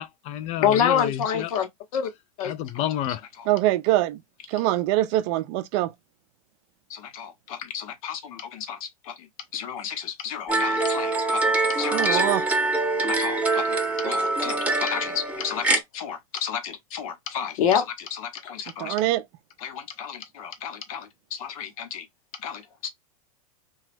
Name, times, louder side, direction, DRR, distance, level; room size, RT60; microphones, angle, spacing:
voice 1, 0.0-1.5 2.4-3.2, left 11 dB, 35° left, 0.4 m, -30 dB
voice 2, 0.6-2.1 2.4-2.5 3.4-3.5 6.9-9.3 9.5-12.2 13.0-19.0 19.6-22.1 22.4-22.9, left 8 dB, 65° left, 0.9 m, -30 dB
voice 3, 3.5-4.2 4.5-5.9 11.9-12.4 18.8-19.2, right 15 dB, 50° right, 0.4 m, -23 dB
sound 1, 10.5-15.8, right 2 dB, 10° right, 0.8 m, -24 dB
2.9 x 2.3 x 3.2 m
hypercardioid pair, 105°, 19 cm